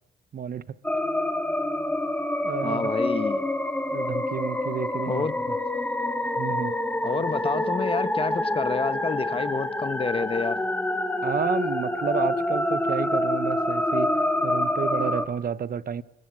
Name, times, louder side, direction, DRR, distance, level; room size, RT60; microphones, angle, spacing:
voice 1, 0.3-0.6 2.4-2.9 3.9-5.6 6.4-6.7 11.2-14.1 14.4-16.0, right 8 dB, 50° right, 1.0 m, -31 dB
sound 1, 0.8-15.3, left 1 dB, 10° left, 2.4 m, -27 dB
voice 2, 2.6-3.4 5.0-5.3 7.0-10.6, left 4 dB, 25° left, 1.4 m, -28 dB
24.0 x 21.5 x 7.6 m
cardioid pair, 90°, 20 cm